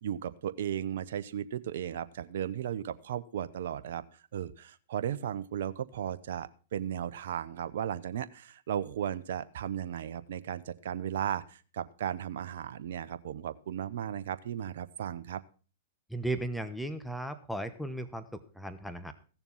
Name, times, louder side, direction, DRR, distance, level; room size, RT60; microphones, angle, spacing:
voice 1, 0.0-4.0 4.3-15.4, right 10 dB, 65° right, 12 dB, 0.8 m, -35 dB
voice 2, 16.1-19.1, right 1 dB, ahead, 10 dB, 1.1 m, -36 dB
16.0 x 7.0 x 5.6 m, 0.38 s
hypercardioid pair, 115°, 0 cm